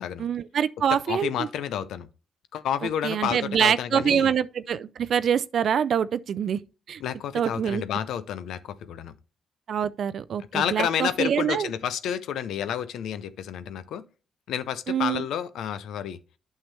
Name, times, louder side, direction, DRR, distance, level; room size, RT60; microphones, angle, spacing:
voice 1, 0.2-1.5 2.8-6.6 6.9-7.0 7.3-7.8 9.7-11.7 14.9-15.2, right 8 dB, 60° right, 0.4 m, -25 dB
voice 2, 1.1-2.1 2.5-4.3 7.0-9.1 10.5-14.0 14.5-16.2, left 9 dB, 75° left, 0.6 m, -30 dB
8.7 x 5.7 x 3.2 m
supercardioid pair, 55°, 0 cm